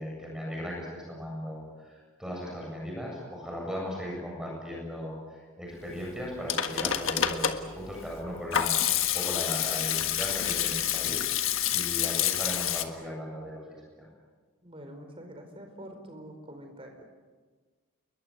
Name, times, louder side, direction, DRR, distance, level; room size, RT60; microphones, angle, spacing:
voice 1, 0.0-14.1, equal, 5° right, -2 dB, 7.7 m, -37 dB
Hands / Sink (filling or washing), 6.2-12.8, left 10 dB, 65° left, 1.6 m, -28 dB
voice 2, 14.6-17.0, equal, 25° right, 5 dB, 4.7 m, -45 dB
29.0 x 22.0 x 8.2 m, 1.4 s
head